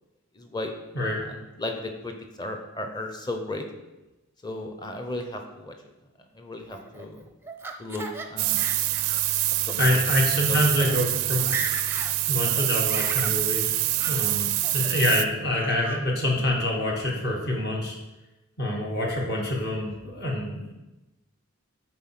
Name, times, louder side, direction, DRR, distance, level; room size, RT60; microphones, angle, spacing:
voice 1, 0.3-0.7 1.2-3.6 4.4-5.7 6.3-7.2 7.8-8.7 9.7-10.1 10.5-11.2, left 1 dB, 20° left, 4 dB, 0.8 m, -35 dB
Laughter, 6.7-8.3 8.6-9.2 9.6-9.8 10.4-10.5 10.8-11.0 11.3-12.1 12.4-13.4 14.0-14.2 14.6-15.1 15.5-16.0, right 3 dB, 10° right, 0.6 m, -36 dB
sound 1, 8.4-15.2, right 15 dB, 75° right, 0.4 m, -25 dB
voice 2, 9.8-11.6 12.3-18.0 18.6-20.7, left 1 dB, 45° left, -1 dB, 1.6 m, -26 dB
9.2 x 4.5 x 6.0 m, 1.0 s
head